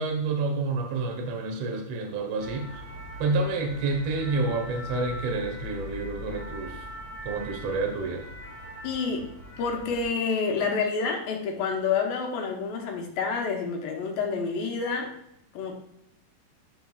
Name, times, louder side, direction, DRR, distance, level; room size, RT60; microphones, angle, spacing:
voice 1, 0.0-2.8 3.2-6.9 7.2-8.3, right 3 dB, 65° right, 2 dB, 1.7 m, -29 dB
sound 1, 2.4-10.0, left 1 dB, 40° right, 3.5 m, -41 dB
voice 2, 8.8-9.3 9.6-15.1 15.5-15.7, left 5 dB, 75° left, 2 dB, 2.7 m, -28 dB
13.0 x 4.6 x 2.4 m, 0.78 s
omnidirectional pair, 4.4 m